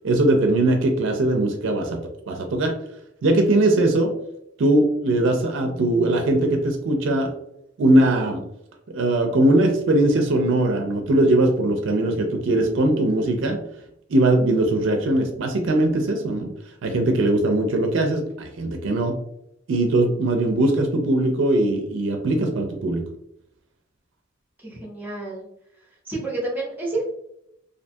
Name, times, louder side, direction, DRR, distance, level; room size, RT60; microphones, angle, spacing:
voice 1, 0.0-2.0 2.3-2.7 3.2-4.1 4.6-7.3 7.8-8.4 8.9-13.6 14.1-16.5 16.8-19.2 19.7-23.0, right 1 dB, 70° right, 3 dB, 0.4 m, -20 dB
voice 2, 24.6-25.5 26.1-27.0, right 2 dB, 10° right, -3 dB, 0.7 m, -29 dB
2.5 x 2.2 x 2.6 m, 0.78 s
head